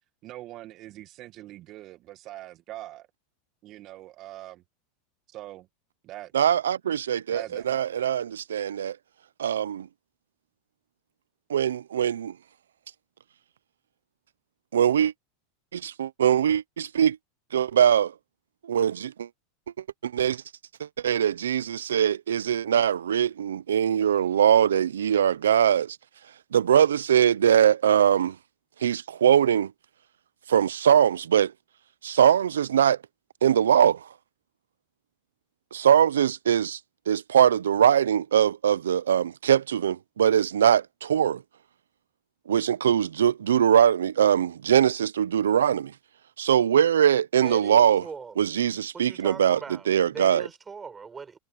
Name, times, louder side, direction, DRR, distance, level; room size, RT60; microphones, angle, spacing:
voice 1, 0.2-3.1 3.6-4.6 5.3-5.7 6.0-6.5 7.3-7.7, right 15 dB, 45° right, 1.9 m, -42 dB
voice 2, 6.3-9.0 9.4-9.9 11.5-12.3 14.7-15.1 15.7-17.2 17.5-18.1 18.7-19.3 20.0-20.4 20.8-26.0 26.5-28.4 28.8-29.7 30.5-31.5 32.0-33.0 33.4-34.0 35.7-36.8 37.1-41.4 42.5-45.9 46.4-48.0 48.4-49.6 49.9-50.4, right 9 dB, 85° right, 0.7 m, -22 dB
voice 3, 47.4-48.6 48.9-51.4, right 5 dB, 20° right, 5.6 m, -41 dB
hypercardioid pair, 105°, 0 cm